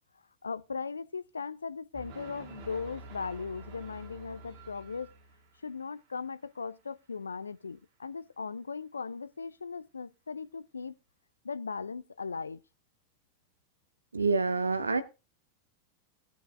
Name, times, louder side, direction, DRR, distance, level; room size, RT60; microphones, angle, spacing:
voice 1, 0.4-5.1 5.6-11.0 11.4-12.6, left 5 dB, 75° left, 0.5 m, -38 dB
sound 1, 1.9-5.7, right 3 dB, 45° right, 1.8 m, -48 dB
voice 2, 14.1-15.0, right 4 dB, 75° right, 1.0 m, -27 dB
19.5 x 6.7 x 2.4 m
figure-of-eight pair, 90°, 0 cm